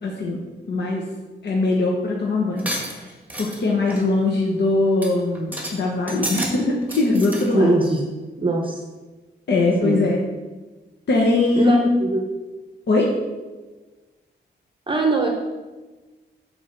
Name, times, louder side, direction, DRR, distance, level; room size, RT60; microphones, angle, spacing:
voice 1, 0.0-0.4 0.7-1.1 1.4-3.1 3.4-7.8 9.5-10.2 11.1-11.9 12.9-13.1, left 2 dB, 65° left, -2 dB, 1.1 m, -21 dB
sound 1, 2.6-3.6 3.9-4.1 4.5-4.6 5.0-5.1 5.3-5.7 6.1-6.5 6.8-7.4, right 1 dB, 10° right, 1.5 m, -30 dB
voice 2, 7.5-8.0 8.4-8.8 9.8-10.1 11.5-12.2 14.9-15.3, right 2 dB, 25° right, 1 dB, 0.8 m, -21 dB
6.4 x 4.5 x 6.6 m, 1.2 s
wide cardioid pair, 145°, 19 cm